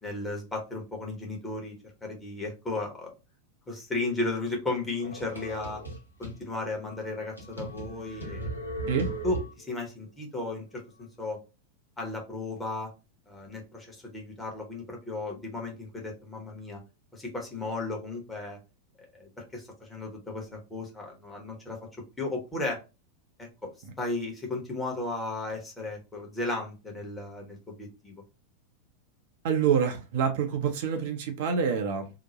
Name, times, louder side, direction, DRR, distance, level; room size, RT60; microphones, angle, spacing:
voice 1, 0.0-1.8 2.0-3.1 3.7-5.8 6.2-8.5 9.2-11.4 12.0-12.9 13.3-16.8 17.1-18.6 19.1-21.8 22.2-22.8 23.4-28.1, left 2 dB, 10° left, 0 dB, 1.0 m, -35 dB
sound 1, 5.0-6.4 6.9-7.0 7.4-9.8, right 2 dB, 90° left, 0.7 m, -37 dB
voice 2, 29.4-32.1, right 7 dB, 50° right, 5 dB, 0.5 m, -27 dB
2.8 x 2.1 x 2.8 m, 0.28 s
figure-of-eight pair, 90°, 0 cm